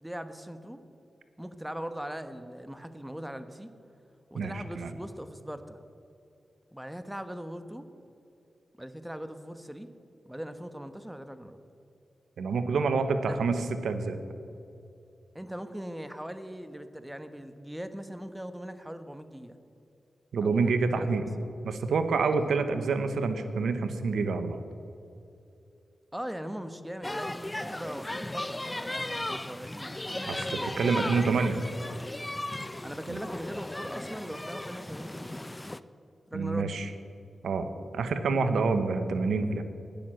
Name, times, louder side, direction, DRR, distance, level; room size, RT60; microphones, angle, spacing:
voice 1, 0.0-0.8 1.4-3.7 4.3-5.8 6.7-7.9 8.8-9.9 10.2-11.6 13.3-13.4 15.3-19.6 20.4-21.1 21.4-21.5 22.3-22.6 26.1-31.6 32.8-35.4 36.3-36.7, equal, 10° right, 10 dB, 1.1 m, -40 dB
voice 2, 4.3-4.9 12.4-14.2 20.3-21.2 21.6-24.6 30.3-31.6 33.1-33.2 36.3-36.9 37.4-37.7 37.9-39.6, right 4 dB, 85° right, 9 dB, 1.0 m, -27 dB
sound 1, 27.0-35.8, left 1 dB, 20° left, 0.6 m, -36 dB
12.0 x 10.0 x 7.6 m, 2.7 s
cardioid pair, 45°, 0 cm